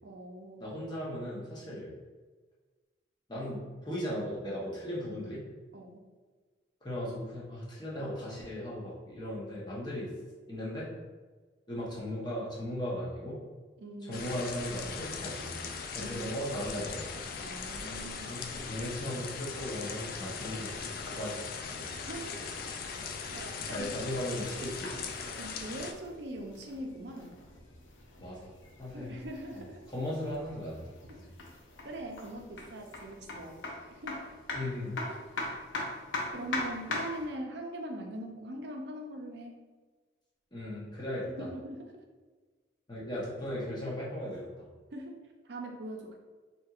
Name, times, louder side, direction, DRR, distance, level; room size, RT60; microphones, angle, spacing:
voice 1, 0.0-0.6 5.7-6.0 13.8-14.4 16.0-16.3 17.4-18.4 21.8-22.7 23.3-23.9 25.3-27.4 28.9-29.9 31.8-33.6 33.9-34.2 35.4-35.5 36.3-39.6 41.4-42.0 44.9-45.2 45.4-46.2, right 1 dB, 60° right, 2 dB, 0.5 m, -42 dB
voice 2, 0.6-1.9 3.3-5.4 6.8-10.1 10.5-10.9 11.7-13.4 14.0-15.6 15.9-17.0 18.3-20.8 21.1-21.9 23.7-25.1 28.2-28.5 28.8-29.2 29.5-30.9 31.2-31.3 34.5-35.0 40.5-41.5 42.9-44.7, left 1 dB, 20° left, -6 dB, 0.9 m, -37 dB
sound 1, 14.1-25.9, left 5 dB, 50° left, 0.3 m, -39 dB
sound 2, 24.0-37.3, left 2 dB, 85° left, 0.7 m, -42 dB
4.3 x 2.8 x 2.4 m, 1.4 s
head